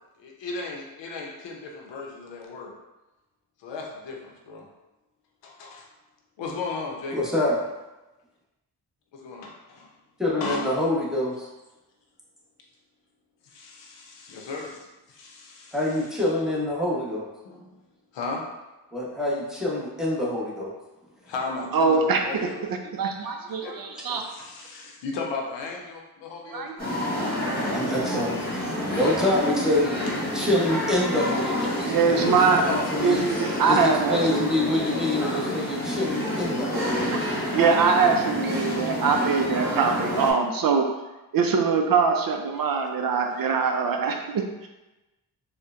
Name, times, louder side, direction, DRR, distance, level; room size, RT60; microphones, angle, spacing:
voice 1, 0.2-2.7 3.6-4.7 5.4-5.9 6.4-7.2 9.1-9.9 10.4-10.8 13.4-15.8 17.4-17.8 18.1-18.4 21.3-22.6 23.2-27.0 27.7-27.8 32.6-32.9, left 3 dB, 90° left, -1 dB, 0.7 m, -36 dB
voice 2, 7.1-7.6 10.2-11.5 15.7-17.3 18.9-20.7 27.4-30.0 30.3-33.2 33.7-37.3, left 1 dB, ahead, -6 dB, 0.9 m, -26 dB
voice 3, 21.7-22.5 22.9-24.2 26.5-27.1 31.8-32.6 33.0-34.5 37.1-37.3 37.5-40.9 41.3-44.7, right 5 dB, 55° right, 4 dB, 0.5 m, -23 dB
sound 1, 26.8-40.3, equal, 20° left, 1.3 m, -28 dB
4.3 x 2.2 x 2.5 m, 1.0 s
cardioid pair, 65°, 42 cm